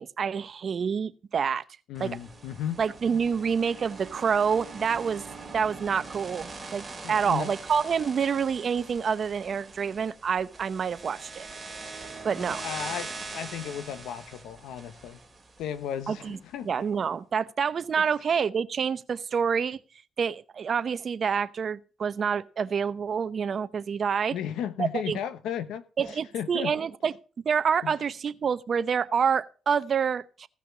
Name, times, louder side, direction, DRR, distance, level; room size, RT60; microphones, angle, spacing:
voice 1, 0.0-1.6 2.0-2.2 2.8-5.2 5.5-11.5 12.2-12.6 16.1-16.4 16.6-19.8 20.2-24.4 24.8-25.2 26.0-27.1 27.4-30.5, right 6 dB, 50° right, 0.8 m, -27 dB
voice 2, 1.9-2.8 7.0-7.5 12.5-15.2 15.6-16.7 24.3-26.7 27.8-27.9, left 9 dB, 85° left, 1.1 m, -35 dB
sound 1, 1.9-16.1, right 3 dB, 20° right, 2.5 m, -42 dB
16.5 x 5.9 x 6.1 m
cardioid pair, 90°, 0 cm